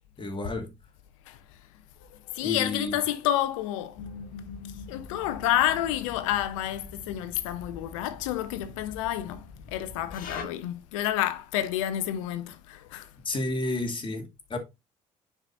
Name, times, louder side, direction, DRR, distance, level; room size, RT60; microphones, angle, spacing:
voice 1, 0.2-0.7 2.4-2.9 13.2-14.6, left 2 dB, 30° left, 2.5 m, -31 dB
voice 2, 2.3-4.0 4.9-13.1, left 12 dB, 80° left, 0.8 m, -29 dB
sound 1, 4.0-10.4, left 5 dB, 60° left, 1.5 m, -43 dB
9.7 x 5.0 x 2.6 m
hypercardioid pair, 55°, 16 cm